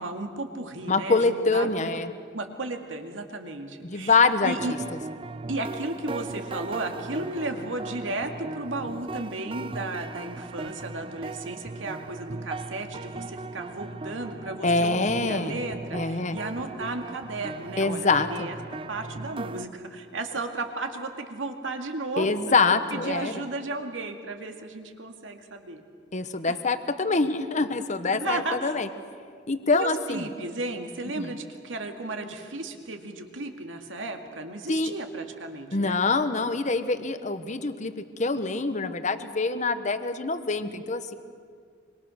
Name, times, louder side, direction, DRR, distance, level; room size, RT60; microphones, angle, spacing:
voice 1, 0.0-2.0 2.3-4.2 4.4-4.7 5.5-18.6 18.9-22.6 22.9-25.8 26.5-26.6 28.2-28.7 29.7-36.0, right 2 dB, 80° right, 5 dB, 2.2 m, -34 dB
voice 2, 0.9-2.1 3.8-4.6 14.6-15.6 15.9-16.4 17.8-18.5 22.2-23.3 26.1-28.9 29.5-30.2 31.2-31.3 34.7-34.9 35.7-41.1, left 3 dB, 40° left, 10 dB, 1.1 m, -25 dB
sound 1, 4.6-19.7, right 3 dB, 30° right, 0.5 m, -38 dB
25.5 x 25.0 x 6.5 m, 2.1 s
head